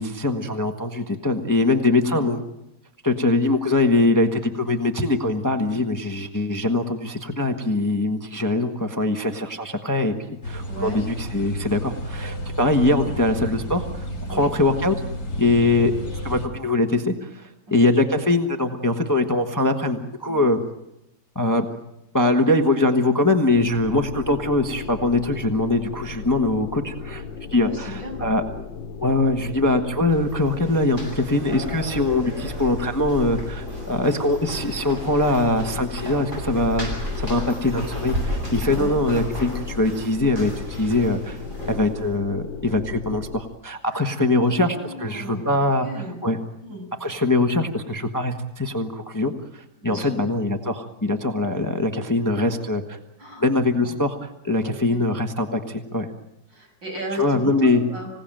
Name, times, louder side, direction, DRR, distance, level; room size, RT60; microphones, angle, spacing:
voice 1, 0.0-2.4 3.0-10.1 10.4-14.9 15.4-15.9 16.2-20.6 21.3-21.7 22.1-27.2 27.5-28.4 29.0-45.9 46.2-46.4 47.0-53.0 53.4-56.1 57.2-57.8, left 2 dB, 10° left, 5 dB, 1.1 m, -22 dB
sound 1, 10.4-16.5, left 1 dB, 55° left, 4.5 m, -32 dB
voice 2, 10.7-11.0 14.3-14.5 17.7-17.9 20.3-20.4 27.5-28.2 38.7-39.0 43.9-45.5 45.8-46.2 46.6-46.9 49.8-50.2 52.4-52.5 53.2-53.4 53.8-54.0 54.6-55.0 56.5-58.1, right 1 dB, 80° right, 1 dB, 7.6 m, -35 dB
sound 2, 23.5-43.4, left 5 dB, 80° left, 1.8 m, -36 dB
sound 3, 30.0-42.1, equal, 40° right, 8.3 m, -33 dB
26.0 x 17.5 x 9.0 m, 0.89 s
omnidirectional pair, 2.0 m